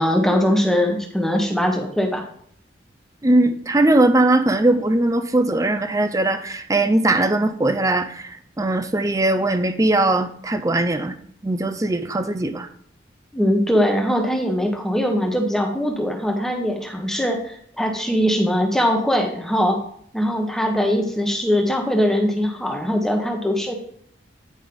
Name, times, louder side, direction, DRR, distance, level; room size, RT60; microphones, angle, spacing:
voice 1, 0.0-2.3 13.3-19.8 20.1-23.7, equal, ahead, 2 dB, 1.0 m, -21 dB
voice 2, 3.2-11.2 11.4-12.7, right 2 dB, 15° right, 10 dB, 0.6 m, -20 dB
9.5 x 5.3 x 3.7 m, 0.63 s
head